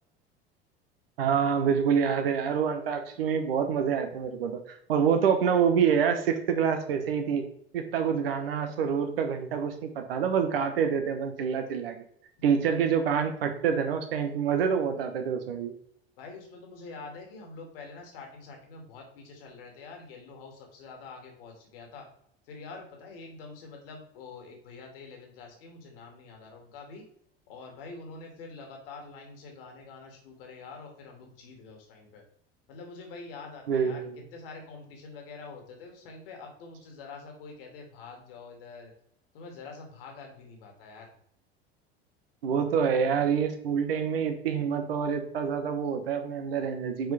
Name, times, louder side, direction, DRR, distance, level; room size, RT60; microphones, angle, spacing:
voice 1, 1.2-7.5 7.7-12.0 12.4-15.7 33.7-34.2 42.4-47.1, right 7 dB, 65° right, 7 dB, 1.3 m, -27 dB
voice 2, 16.2-22.1 22.5-27.0 27.5-32.2 32.7-34.1 34.3-38.9 39.3-41.1, left 4 dB, 60° left, 2 dB, 2.4 m, -46 dB
9.3 x 4.7 x 3.4 m, 0.68 s
figure-of-eight pair, 70°, 31 cm